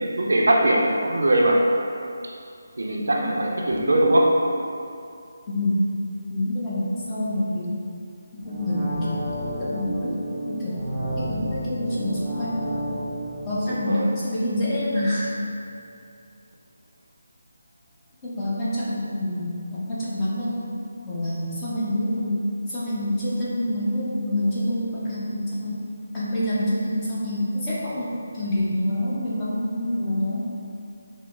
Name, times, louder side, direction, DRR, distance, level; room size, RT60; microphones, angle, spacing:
voice 1, 0.0-1.6 2.2-2.3 2.8-4.4 13.7-14.1, right 1 dB, 75° right, -1 dB, 0.5 m, -21 dB
voice 2, 5.5-5.8 6.3-7.8 8.3-9.2 9.6-10.8 11.2-12.8 13.4-15.4 18.2-20.5 21.0-22.4 22.7-25.9 26.1-30.4, left 1 dB, 20° left, -10 dB, 0.9 m, -27 dB
sound 1, 8.4-15.3 15.6-15.7, right 1 dB, 10° right, 0.7 m, -32 dB
6.1 x 2.0 x 2.4 m, 2.5 s
figure-of-eight pair, 155°, 0 cm